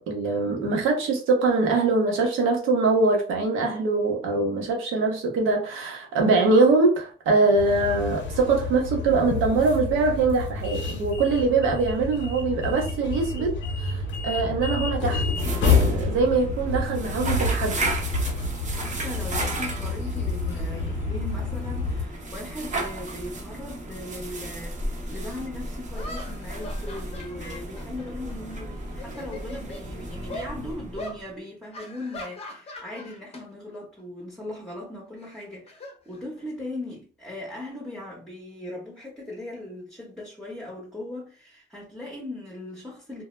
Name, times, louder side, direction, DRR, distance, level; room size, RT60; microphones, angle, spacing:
voice 1, 0.0-15.2 15.7-17.9, right 3 dB, 90° right, 0.8 m, -23 dB
sound 1, 7.6-22.0, left 4 dB, 70° left, 0.6 m, -28 dB
sound 2, 15.2-31.3, right 2 dB, 40° right, 0.7 m, -34 dB
voice 2, 18.7-43.2, left 1 dB, ahead, 0.8 m, -38 dB
sound 3, 25.1-25.2 25.9-28.6 28.9-29.9 30.3-30.5 31.0-31.2 31.7-33.4 33.7-34.0 35.2-36.6, left 1 dB, 30° left, 0.6 m, -40 dB
2.2 x 2.0 x 3.1 m
cardioid pair, 90°, 20 cm